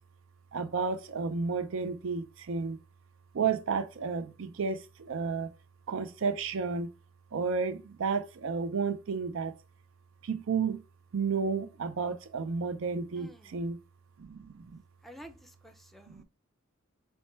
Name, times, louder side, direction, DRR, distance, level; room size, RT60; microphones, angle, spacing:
voice 1, 0.5-2.8 3.3-5.5 5.9-6.9 7.3-9.5 10.2-10.8 11.1-13.8 14.2-14.8 16.1-16.2, right 5 dB, 70° right, 0.5 m, -32 dB
voice 2, 13.2-13.6 15.0-16.2, equal, ahead, 0.5 m, -51 dB
4.3 x 2.2 x 4.3 m
head